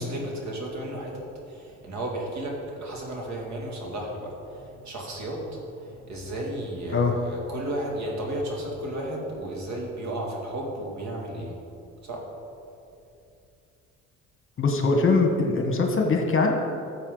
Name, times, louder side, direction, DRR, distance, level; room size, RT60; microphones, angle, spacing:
voice 1, 0.0-11.6 12.0-12.3, right 1 dB, 55° right, -1 dB, 2.5 m, -33 dB
voice 2, 14.6-16.5, left 3 dB, 40° left, 3 dB, 1.5 m, -22 dB
13.0 x 7.4 x 4.0 m, 2.6 s
supercardioid pair, 80°, 34 cm